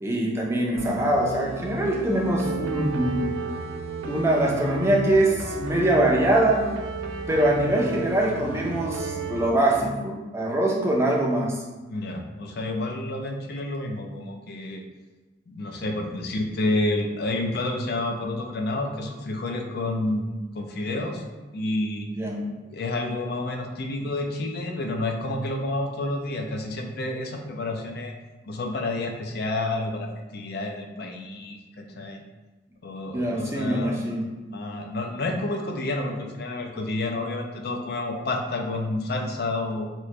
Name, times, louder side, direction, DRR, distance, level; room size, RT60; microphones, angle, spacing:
voice 1, 0.0-3.3 4.0-6.6 7.3-11.6 22.2-22.4 33.1-34.2, right 1 dB, 15° right, -2 dB, 0.4 m, -23 dB
sound 1, 0.8-9.5, right 4 dB, 85° right, 0.3 m, -33 dB
voice 2, 11.9-14.8 15.5-21.2 21.5-22.1 22.7-28.1 28.5-32.2 32.8-34.0 34.4-39.9, left 2 dB, 55° left, 3 dB, 0.4 m, -29 dB
2.9 x 2.5 x 3.1 m, 1.2 s
head